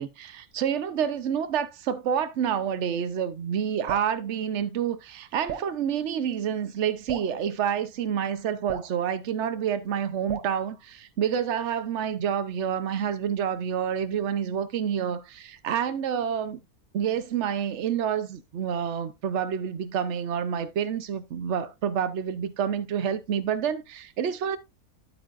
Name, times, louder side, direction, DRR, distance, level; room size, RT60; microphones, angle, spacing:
voice 1, 0.0-16.6 16.9-24.6, right 8 dB, 55° right, 1.0 m, -28 dB
Drip, 3.9-4.1 5.5-5.7 7.1-7.3 8.7-8.9 10.3-10.6, right 9 dB, 70° right, 1.3 m, -35 dB
10.0 x 8.0 x 2.5 m
omnidirectional pair, 1.7 m